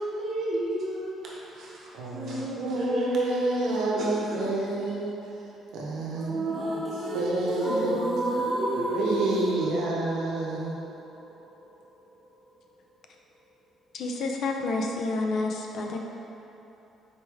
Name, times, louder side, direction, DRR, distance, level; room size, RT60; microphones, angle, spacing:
voice 1, 0.0-4.9 6.2-9.7, right 1 dB, 50° right, -5 dB, 0.9 m, -33 dB
voice 2, 1.9-5.1 5.7-6.4 7.1-8.0 8.3-8.4 8.7-10.7, right 2 dB, 80° right, -3 dB, 0.7 m, -29 dB
sound 1, 6.3-12.3, right 1 dB, 5° left, 0.7 m, -34 dB
voice 3, 13.9-16.0, left 3 dB, 50° left, 2 dB, 0.4 m, -29 dB
4.2 x 3.2 x 3.4 m, 3.0 s
cardioid pair, 155°, 0 cm